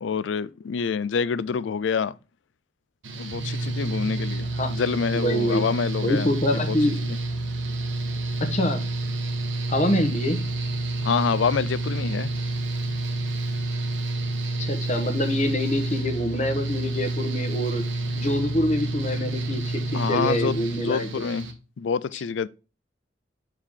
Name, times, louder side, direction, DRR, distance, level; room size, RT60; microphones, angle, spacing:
voice 1, 0.0-2.1 3.1-6.8 7.0-7.2 11.0-12.3 19.9-21.5 21.8-22.5, left 6 dB, 75° left, 0.4 m, -27 dB
Mechanical fan, 3.0-21.5, right 2 dB, 90° right, 1.2 m, -29 dB
voice 2, 5.1-5.7 6.0-7.0 8.4-8.9 9.7-10.4 14.6-17.9 18.1-21.1 22.1-22.2, left 1 dB, 40° left, 1.1 m, -25 dB
6.6 x 4.6 x 3.6 m
head